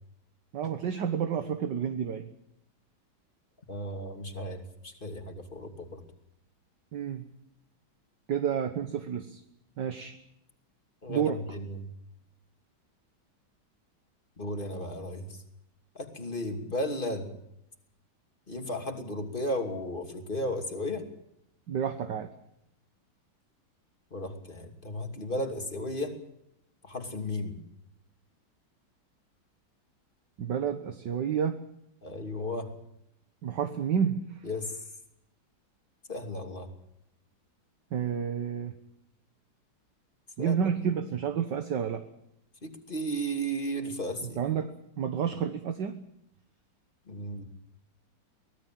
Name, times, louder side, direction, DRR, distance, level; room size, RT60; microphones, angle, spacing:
voice 1, 0.5-2.3 6.9-7.2 8.3-9.4 9.8-10.2 11.1-11.4 21.7-22.3 30.4-31.6 33.4-34.4 37.9-38.7 40.4-42.0 44.4-46.0, right 8 dB, 60° right, 8 dB, 1.8 m, -30 dB
voice 2, 3.7-6.0 11.0-11.9 14.4-15.4 15.9-17.3 18.5-21.0 24.1-26.2 26.8-27.6 32.0-32.7 34.4-34.8 36.1-36.7 40.4-40.6 42.6-44.4 47.1-47.4, equal, 25° left, 5 dB, 2.9 m, -34 dB
24.5 x 18.5 x 7.6 m, 0.79 s
omnidirectional pair, 2.2 m